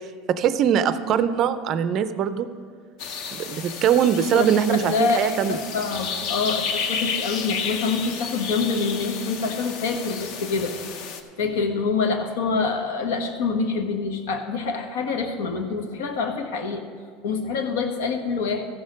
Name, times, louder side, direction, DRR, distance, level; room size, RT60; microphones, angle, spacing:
voice 1, 0.3-2.5 3.3-5.6, right 8 dB, 30° right, 12 dB, 0.4 m, -22 dB
sound 1, 3.0-11.2, left 6 dB, 50° left, 0.7 m, -32 dB
voice 2, 4.3-10.7 11.4-16.8 17.2-18.7, left 4 dB, 85° left, 5 dB, 1.3 m, -26 dB
14.5 x 6.4 x 5.2 m, 2.1 s
cardioid pair, 175°, 0 cm